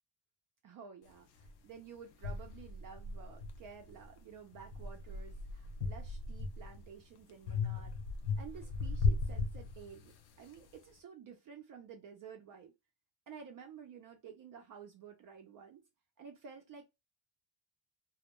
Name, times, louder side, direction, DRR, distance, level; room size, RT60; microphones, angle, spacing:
voice 1, 0.6-8.0 8.4-12.7 13.3-15.8 16.2-16.9, right 7 dB, 45° right, 0.4 m, -52 dB
sound 1, 1.4-1.5 2.2-4.1 4.5-6.9 7.5-10.2, left 4 dB, 55° left, 0.5 m, -37 dB
2.1 x 2.1 x 2.9 m
cardioid pair, 170°, 47 cm